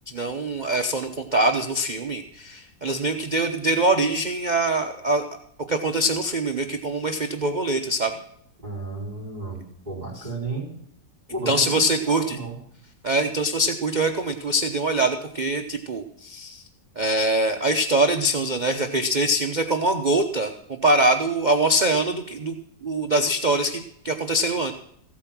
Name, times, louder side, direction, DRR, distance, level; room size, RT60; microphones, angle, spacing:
voice 1, 0.1-5.2 5.7-8.2 11.5-12.4 13.0-16.6 17.0-22.6 22.8-24.7, right 1 dB, 45° right, 5 dB, 0.6 m, -23 dB
voice 2, 8.6-9.6 9.8-10.7 11.3-12.6, right 3 dB, 25° right, -1 dB, 4.7 m, -33 dB
15.5 x 8.6 x 6.0 m, 0.70 s
omnidirectional pair, 1.9 m